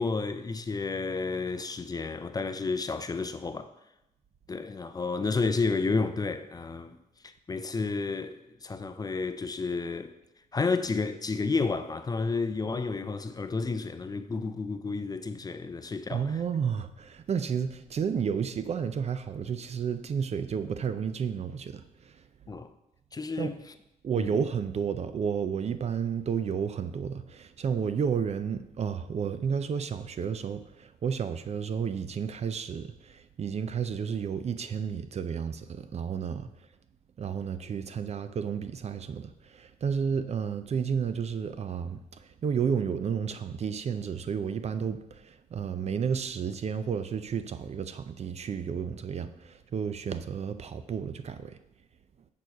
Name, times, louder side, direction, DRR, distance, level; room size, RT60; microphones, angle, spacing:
voice 1, 0.0-3.7 4.5-7.0 7.5-10.1 10.5-16.4 22.5-22.7 23.1-23.6 24.2-24.4, left 4 dB, 25° left, 0.5 m, -31 dB
voice 2, 16.1-21.8 23.4-23.5 24.0-36.5 37.2-42.0 42.4-51.6, right 7 dB, 45° right, 0.5 m, -31 dB
6.8 x 4.7 x 5.4 m
cardioid pair, 100°, 15 cm